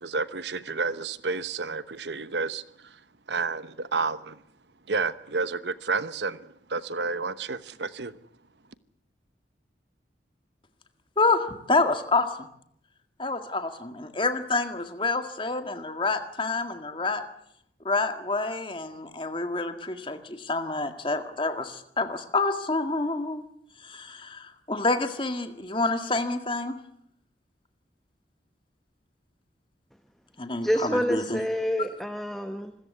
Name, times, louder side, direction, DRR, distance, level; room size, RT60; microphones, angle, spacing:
voice 1, 0.0-2.6 3.3-4.3 4.9-6.4 6.7-8.1, right 4 dB, 80° right, 14 dB, 1.0 m, -30 dB
voice 2, 11.2-12.5 13.2-17.2 17.8-23.5 23.8-26.8 30.4-30.7 31.1-31.4, left 3 dB, 30° left, 7 dB, 1.8 m, -28 dB
voice 3, 30.6-32.8, equal, ahead, 7 dB, 1.0 m, -27 dB
26.0 x 14.5 x 8.4 m, 0.73 s
head